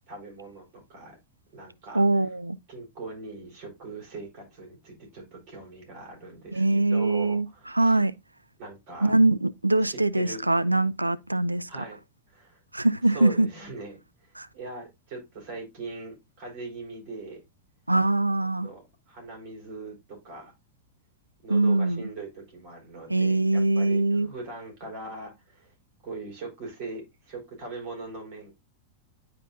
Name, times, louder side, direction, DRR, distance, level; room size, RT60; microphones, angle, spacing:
voice 1, 0.1-1.2 1.5-2.0 2.7-8.0 8.6-9.1 9.8-10.4 11.7-12.0 12.3-12.6 13.1-17.4 18.6-18.8 19.1-20.5 21.4-25.7 26.0-28.5, right 3 dB, 45° right, 3.8 m, -41 dB
voice 2, 1.9-2.6 6.5-8.2 9.0-11.8 12.7-13.5 14.4-14.5 17.9-18.7 21.5-22.0 23.1-24.3, right 2 dB, 85° right, 0.3 m, -23 dB
10.0 x 4.2 x 2.4 m
figure-of-eight pair, 90°, 0 cm